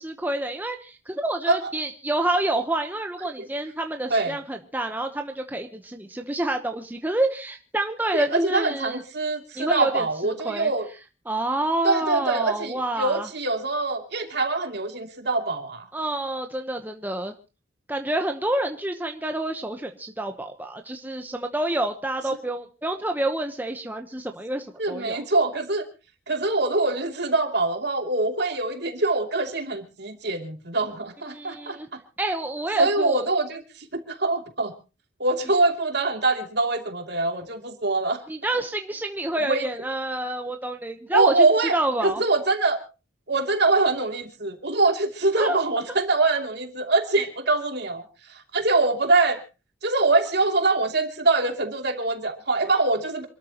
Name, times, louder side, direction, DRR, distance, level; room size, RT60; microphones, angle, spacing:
voice 1, 0.0-9.0 9.6-10.7 11.3-13.3 15.9-17.3 17.9-25.3 31.3-31.9 32.2-33.2 38.3-42.2 45.4-45.6, right 1 dB, 10° right, 4 dB, 1.0 m, -28 dB
voice 2, 8.1-10.9 11.8-15.9 24.8-25.8 26.3-32.0 32.8-34.7 35.2-38.2 39.3-39.7 41.1-42.8 43.3-48.0 48.5-49.4 49.8-53.3, right 3 dB, 55° right, 4 dB, 2.9 m, -24 dB
27.5 x 13.0 x 3.0 m, 0.33 s
head